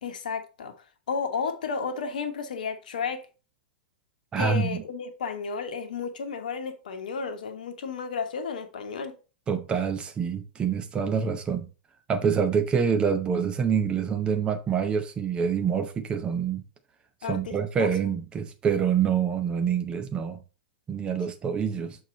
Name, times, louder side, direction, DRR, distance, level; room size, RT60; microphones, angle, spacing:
voice 1, 0.0-0.7 1.1-3.2 4.4-9.2 17.2-17.9, left 5 dB, 60° left, 1.1 m, -32 dB
voice 2, 4.3-4.8 9.5-11.7 12.1-16.6 17.3-20.4 20.9-22.0, right 7 dB, 20° right, 0.7 m, -26 dB
6.5 x 4.6 x 4.1 m
figure-of-eight pair, 100°, 5 cm